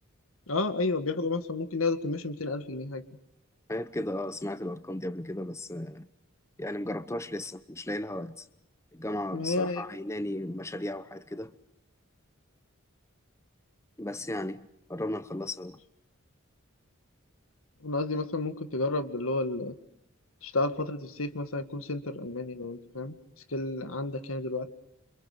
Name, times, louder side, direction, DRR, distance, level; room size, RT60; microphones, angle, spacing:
voice 1, 0.5-3.0 9.3-9.8 17.8-19.7 20.4-23.2 23.5-24.7, left 2 dB, 75° left, 1.9 m, -31 dB
voice 2, 3.7-6.1 6.6-8.5 8.9-11.5 14.0-15.8, left 1 dB, 15° left, 0.8 m, -35 dB
28.5 x 26.5 x 5.0 m
head